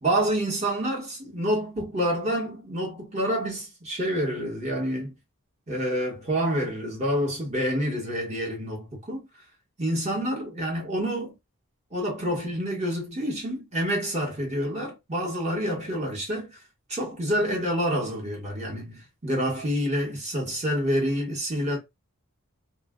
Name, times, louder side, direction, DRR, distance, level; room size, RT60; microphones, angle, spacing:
voice 1, 0.0-5.1 5.7-9.2 9.8-11.3 11.9-16.6 16.9-21.8, equal, 30° right, 1.1 m, -28 dB
2.4 x 2.2 x 3.6 m
head